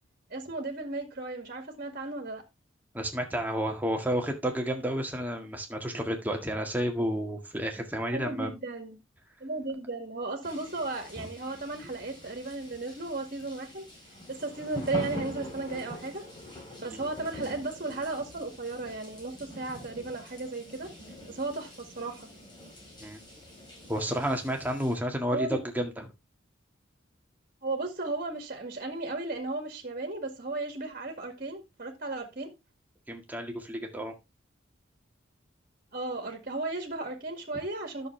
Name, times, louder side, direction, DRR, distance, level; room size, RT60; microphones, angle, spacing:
voice 1, 0.3-2.4 8.1-9.0 9.4-13.9 14.3-16.2 16.8-20.9 21.3-22.3 25.3-25.6 27.6-32.5 35.9-38.1, right 2 dB, 45° right, 2.1 m, -35 dB
voice 2, 2.9-8.5 11.2-11.3 16.9-17.0 23.0-23.2 23.9-26.1 33.1-34.1, equal, 10° right, 1.9 m, -31 dB
sound 1, 10.4-24.9, left 1 dB, 25° left, 4.8 m, -44 dB
11.0 x 6.8 x 3.3 m
head